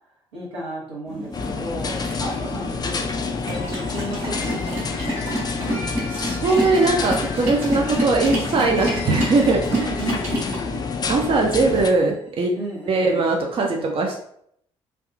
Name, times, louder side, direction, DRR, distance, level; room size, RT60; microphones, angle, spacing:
voice 1, 0.3-5.9 9.7-10.9 11.5-11.6 12.6-14.0, right 1 dB, 80° right, -5 dB, 0.9 m, -34 dB
sound 1, 1.1-10.6, right 1 dB, 60° right, 1.4 m, -30 dB
sound 2, 1.3-11.9, left 5 dB, 30° left, 0.4 m, -28 dB
sound 3, 2.2-12.8, left 2 dB, 65° left, 0.9 m, -40 dB
voice 2, 6.1-9.9 11.1-12.5 12.9-14.2, right 3 dB, 40° right, 1 dB, 0.5 m, -20 dB
3.4 x 2.3 x 2.3 m, 0.68 s
figure-of-eight pair, 45°, 14 cm